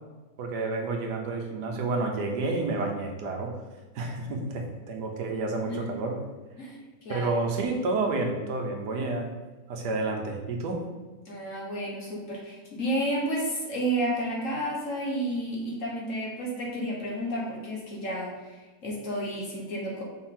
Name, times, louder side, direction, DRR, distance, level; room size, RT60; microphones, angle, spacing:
voice 1, 0.4-3.5 3.9-6.2 7.1-9.3 9.7-10.8, right 3 dB, 75° right, 2 dB, 1.4 m, -30 dB
voice 2, 6.6-7.3 11.3-20.0, right 1 dB, 50° left, -2 dB, 1.5 m, -31 dB
6.4 x 4.4 x 3.7 m, 1.3 s
omnidirectional pair, 1.8 m